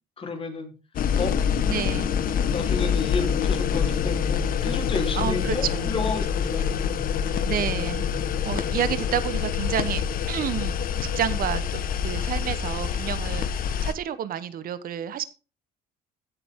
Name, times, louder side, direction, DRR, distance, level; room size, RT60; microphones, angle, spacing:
voice 1, 0.2-0.7 1.2-1.3 2.5-6.9, left 4 dB, 35° left, 3.4 m, -31 dB
sound 1, 1.0-13.9, left 7 dB, 55° left, 1.2 m, -26 dB
voice 2, 1.7-2.1 5.1-6.0 7.1-8.1 8.4-10.8 11.1-15.2, right 10 dB, 60° right, 1.0 m, -30 dB
16.0 x 6.9 x 3.6 m
cardioid pair, 110°, 17 cm